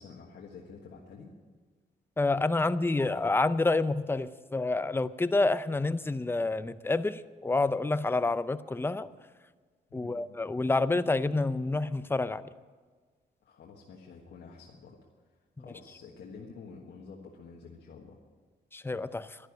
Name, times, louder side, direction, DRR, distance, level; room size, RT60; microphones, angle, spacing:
voice 1, 0.0-1.3 9.9-10.2 13.4-15.0 15.6-18.2, left 5 dB, 85° left, 1.5 m, -49 dB
voice 2, 2.2-9.1 9.9-12.4 18.7-19.4, left 3 dB, 15° left, 0.5 m, -28 dB
12.0 x 11.0 x 8.7 m
cardioid pair, 85°, 17 cm